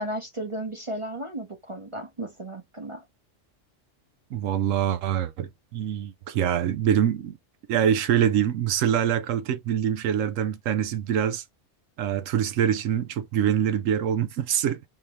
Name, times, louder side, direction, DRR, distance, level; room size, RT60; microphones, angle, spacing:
voice 1, 0.0-3.0, right 1 dB, 30° right, 0.7 m, -34 dB
voice 2, 4.3-7.4 7.7-11.4 12.0-14.9, right 9 dB, 85° right, 1.0 m, -25 dB
3.8 x 2.7 x 3.1 m
omnidirectional pair, 1.3 m